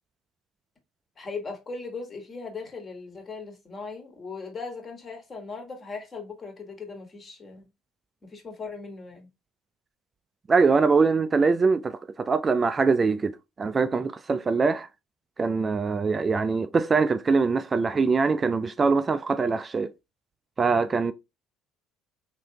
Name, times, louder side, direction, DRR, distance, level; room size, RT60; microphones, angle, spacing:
voice 1, 1.2-7.6 8.3-9.3, left 4 dB, 35° left, 1.4 m, -38 dB
voice 2, 10.5-14.9 15.4-19.9 20.6-21.1, right 4 dB, 30° right, 0.3 m, -23 dB
3.2 x 2.9 x 2.7 m
hypercardioid pair, 60°, 0 cm